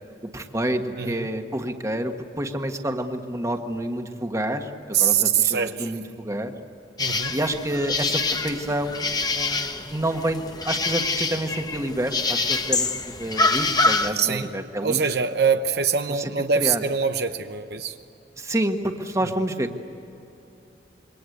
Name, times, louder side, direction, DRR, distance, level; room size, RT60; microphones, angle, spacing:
voice 1, 0.2-6.5 7.3-15.0 16.6-16.8 18.4-19.9, right 1 dB, 20° right, 5 dB, 1.6 m, -28 dB
voice 2, 1.0-1.3 4.9-6.0 7.0-7.4 14.1-14.5 14.8-18.0 19.2-19.3, right 6 dB, 65° right, 7 dB, 0.9 m, -23 dB
sound 1, 7.0-14.1, left 3 dB, 25° left, 1.2 m, -26 dB
27.0 x 23.5 x 8.0 m, 2.9 s
head